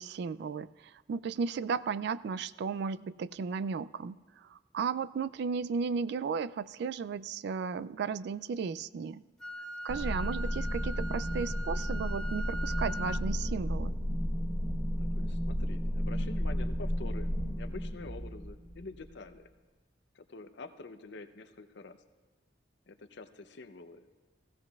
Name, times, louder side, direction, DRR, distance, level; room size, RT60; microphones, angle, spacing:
voice 1, 0.0-9.2 9.8-13.9, right 5 dB, 60° right, 17 dB, 0.3 m, -35 dB
Wind instrument woodwind instrument, 9.4-13.3, right 1 dB, 5° left, 1.8 m, -41 dB
sound 1, 9.9-19.1, equal, 20° right, 1.8 m, -33 dB
voice 2, 15.0-19.5 20.1-22.0 22.9-24.1, left 3 dB, 65° left, 9 dB, 0.6 m, -47 dB
16.5 x 15.5 x 2.3 m, 1.4 s
head